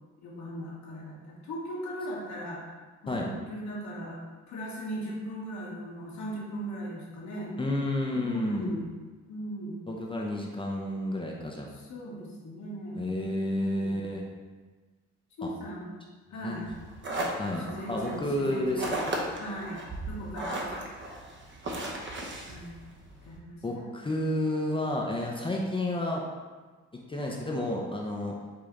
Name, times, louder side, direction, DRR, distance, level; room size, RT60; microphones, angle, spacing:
voice 1, 0.2-2.7 3.0-4.2 4.5-7.6 8.1-8.9 9.3-9.8 11.7-13.0 13.6-13.9 15.4-15.9 16.3-16.6 17.6-19.8 20.1-20.6 22.4-22.7 23.2-23.9, right 1 dB, 70° left, -4 dB, 1.4 m, -38 dB
voice 2, 7.6-8.8 9.9-11.7 12.9-14.3 15.4-15.5 16.4-16.7 17.4-19.1 23.6-26.2 26.9-28.3, left 1 dB, 15° left, -2 dB, 0.6 m, -31 dB
sound 1, 16.6-23.4, right 1 dB, 40° right, 0.8 m, -36 dB
5.2 x 2.8 x 3.6 m, 1.3 s
cardioid pair, 90°, 30 cm